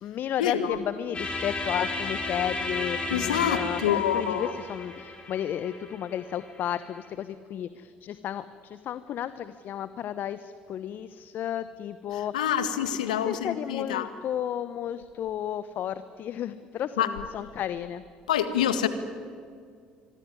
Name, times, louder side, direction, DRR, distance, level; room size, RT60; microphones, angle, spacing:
voice 1, 0.0-12.5 13.2-18.0, left 10 dB, 50° left, 14 dB, 0.9 m, -33 dB
sound 1, 1.1-7.1, left 3 dB, 25° left, 6.0 m, -34 dB
voice 2, 3.1-4.5 12.3-14.1 17.0-17.1 18.3-18.9, left 9 dB, 80° left, 11 dB, 1.7 m, -26 dB
25.5 x 23.5 x 9.7 m, 2.2 s
hypercardioid pair, 60°, 4 cm